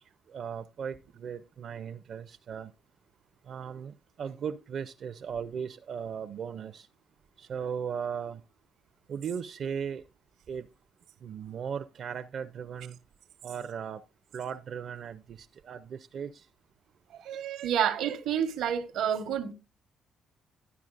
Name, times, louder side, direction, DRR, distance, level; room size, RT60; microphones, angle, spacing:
voice 1, 0.3-2.7 3.5-6.9 7.4-8.4 9.1-10.0 10.5-10.7 11.2-13.0 13.4-14.0 14.3-16.5, right 7 dB, 60° right, 0.5 m, -37 dB
voice 2, 17.2-19.5, right 9 dB, 90° right, 1.1 m, -29 dB
12.0 x 9.4 x 2.5 m
cardioid pair, 90°, 0 cm